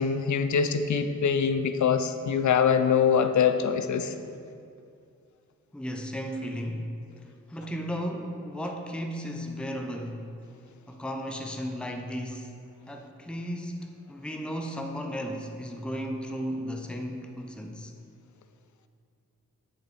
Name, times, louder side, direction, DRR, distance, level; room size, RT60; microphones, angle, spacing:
voice 1, 0.0-4.1, left 6 dB, 60° left, 9 dB, 0.6 m, -24 dB
voice 2, 5.7-7.0 7.5-10.4 10.9-12.6 12.9-17.9, equal, 5° left, 3 dB, 0.8 m, -35 dB
7.5 x 6.6 x 4.3 m, 2.4 s
cardioid pair, 50°, 33 cm